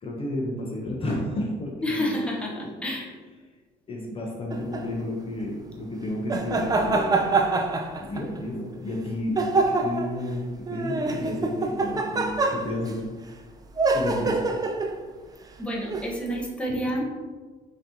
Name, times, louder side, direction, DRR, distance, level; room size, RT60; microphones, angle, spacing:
voice 1, 0.0-2.2 2.6-2.7 3.9-7.3 8.0-10.4 10.7-13.1 13.9-14.4, left 1 dB, 35° left, -1 dB, 0.8 m, -31 dB
voice 2, 1.8-3.1 15.6-17.1, equal, 5° left, -2 dB, 0.9 m, -29 dB
sound 1, 4.5-4.9 6.3-8.4 9.4-10.2 10.7-12.9 13.8-15.0 15.9-16.1, right 3 dB, 20° right, 0.4 m, -25 dB
5.8 x 2.9 x 2.8 m, 1.4 s
cardioid pair, 110°, 17 cm